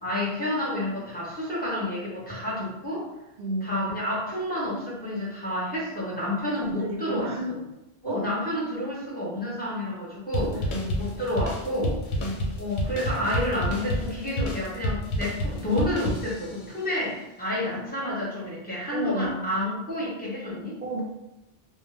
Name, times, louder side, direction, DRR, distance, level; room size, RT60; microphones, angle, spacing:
voice 1, 0.0-3.1 3.6-7.6 8.0-10.6 11.0-12.0 12.6-20.8, left 1 dB, 10° left, -7 dB, 0.7 m, -29 dB
voice 2, 3.4-3.8 6.4-7.6 8.0-8.3 10.4-11.0 12.2-12.4 18.9-19.4 20.8-21.0, right 1 dB, 50° right, -2 dB, 0.7 m, -32 dB
sound 1, 10.3-16.7, equal, 85° left, 0.9 m, -30 dB
2.0 x 2.0 x 3.2 m, 0.94 s
omnidirectional pair, 1.1 m